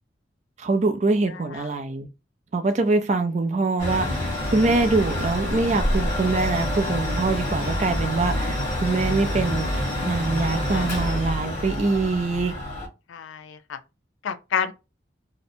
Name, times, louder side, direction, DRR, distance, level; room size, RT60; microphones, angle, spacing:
voice 1, 0.6-2.1 2.5-12.5, right 3 dB, 35° right, 0.4 m, -24 dB
voice 2, 1.3-1.8 10.5-10.9 13.1-13.8 14.2-14.7, left 7 dB, 90° left, 0.4 m, -31 dB
Mechanical fan, 3.8-12.9, left 1 dB, 40° left, 1.4 m, -27 dB
2.7 x 2.1 x 2.5 m
head